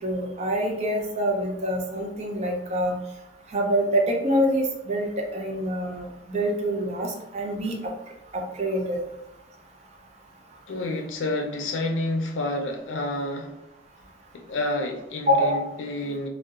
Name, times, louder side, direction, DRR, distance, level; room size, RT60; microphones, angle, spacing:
voice 1, 0.0-3.0 3.5-7.8 8.3-9.0 15.3-15.6, equal, 35° right, 1 dB, 0.4 m, -25 dB
voice 2, 10.7-13.5 14.3-16.3, left 1 dB, 90° left, 3 dB, 0.4 m, -29 dB
2.7 x 2.0 x 2.3 m, 0.90 s
head